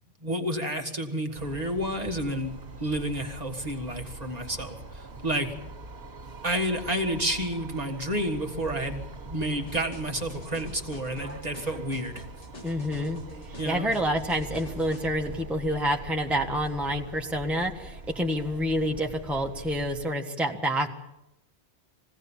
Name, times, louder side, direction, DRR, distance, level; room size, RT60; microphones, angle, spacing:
voice 1, 0.2-5.5 6.4-12.2 13.6-13.9, right 1 dB, 35° right, 2 dB, 1.9 m, -30 dB
sound 1, 1.3-20.1, right 2 dB, 65° right, 2.2 m, -43 dB
sound 2, 9.7-15.1, left 1 dB, 80° left, 2.3 m, -46 dB
voice 2, 12.6-13.2 13.5-20.9, equal, ahead, 1 dB, 1.4 m, -28 dB
22.5 x 16.5 x 7.3 m, 0.89 s
omnidirectional pair, 1.2 m